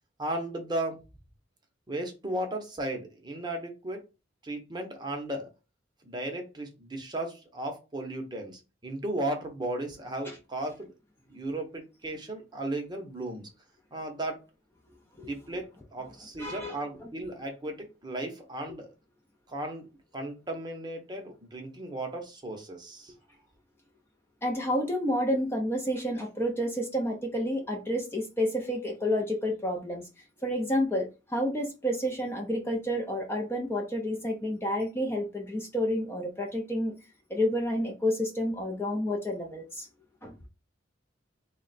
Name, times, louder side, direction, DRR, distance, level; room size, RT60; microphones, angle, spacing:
voice 1, 0.2-1.0 1.9-4.0 4.4-5.5 6.0-10.9 11.3-13.5 13.9-14.4 15.2-18.9 19.5-19.9 20.1-23.1, right 1 dB, 25° right, 3 dB, 0.8 m, -35 dB
voice 2, 16.4-17.1 24.4-30.0 30.4-36.9 37.3-39.9 40.2-40.5, equal, 10° left, 0 dB, 0.5 m, -30 dB
3.6 x 2.2 x 4.0 m, 0.29 s
head